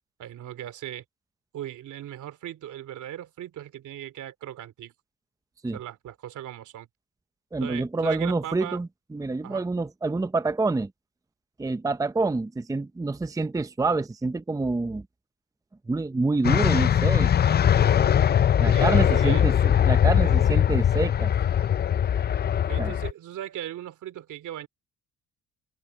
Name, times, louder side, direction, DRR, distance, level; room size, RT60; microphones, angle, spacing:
voice 1, 0.2-1.0 1.5-4.9 5.7-6.9 7.6-8.8 9.4-9.6 18.7-19.4 22.7-24.7, right 11 dB, 75° right, 2.9 m, -38 dB
voice 2, 7.5-10.9 11.6-15.0 15.9-17.3 18.6-19.5 19.8-21.3 22.8-22.9, right 3 dB, 10° right, 0.7 m, -27 dB
sound 1, 16.4-23.1, left 9 dB, 35° left, 0.4 m, -21 dB
cardioid pair, 90°, 30 cm